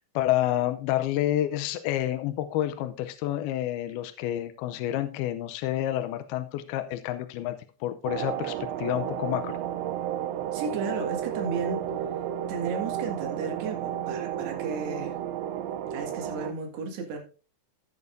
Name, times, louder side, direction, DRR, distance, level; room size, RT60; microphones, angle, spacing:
voice 1, 0.2-9.6, left 13 dB, 85° left, 2.3 m, -29 dB
sound 1, 8.1-16.5, right 10 dB, 85° right, 2.9 m, -32 dB
voice 2, 10.5-11.8 12.5-15.2 15.9-17.2, right 4 dB, 70° right, 3.9 m, -34 dB
15.0 x 8.8 x 2.6 m
omnidirectional pair, 5.1 m